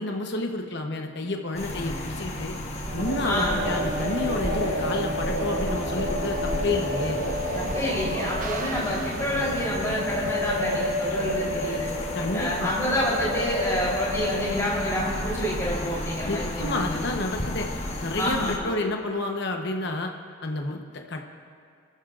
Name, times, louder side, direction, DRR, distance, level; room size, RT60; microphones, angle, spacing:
voice 1, 0.0-2.5 2.9-7.2 12.1-12.7 16.3-17.7 18.0-20.1 20.4-21.2, left 2 dB, 55° left, 3 dB, 1.0 m, -30 dB
sound 1, 1.5-18.6, left 1 dB, 30° left, 1.2 m, -33 dB
sound 2, 2.8-10.9, right 2 dB, 40° right, 0.6 m, -34 dB
sound 3, 3.1-14.6, left 1 dB, 75° left, 1.6 m, -31 dB
voice 2, 3.2-3.6 7.6-11.9 12.3-17.0 18.2-18.7, equal, 15° left, -6 dB, 3.7 m, -28 dB
29.5 x 13.5 x 2.5 m, 2.2 s
head